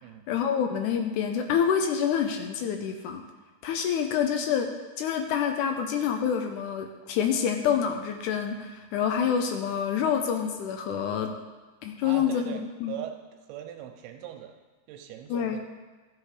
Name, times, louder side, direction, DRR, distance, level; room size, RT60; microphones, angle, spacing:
voice 1, 0.3-3.2 3.6-11.3 11.8-13.0 15.3-15.6, left 8 dB, 90° left, 5 dB, 1.7 m, -27 dB
voice 2, 12.0-12.6 12.9-13.2 13.5-14.5 14.9-15.6, right 11 dB, 85° right, 4 dB, 2.8 m, -40 dB
14.0 x 5.7 x 5.0 m, 1.3 s
omnidirectional pair, 4.4 m